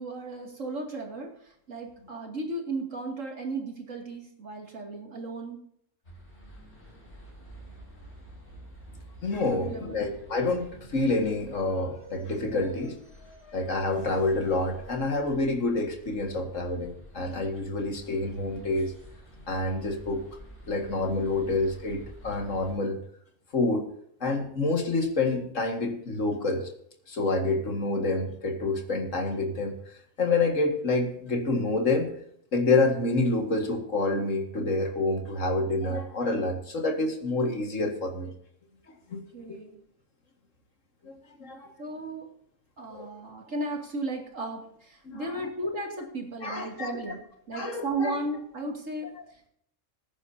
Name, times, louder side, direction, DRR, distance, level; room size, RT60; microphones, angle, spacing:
voice 1, 0.0-5.6 9.5-10.0 39.1-39.8 41.8-42.3 42.8-49.5, right 2 dB, 80° right, 1 dB, 2.8 m, -35 dB
sound 1, 6.0-22.7, equal, 65° left, 5.7 m, -49 dB
voice 2, 9.2-13.0 13.5-18.9 19.5-20.2 20.7-23.0 23.5-23.9 24.2-26.6 27.1-29.7 30.2-32.1 32.5-38.3 39.1-39.2 39.5-39.6 41.0-41.8 42.9-43.1 45.1-45.3 46.4-46.9 47.5-48.2, left 2 dB, 80° left, 3 dB, 2.2 m, -28 dB
20.0 x 9.9 x 2.8 m, 0.67 s
omnidirectional pair, 1.3 m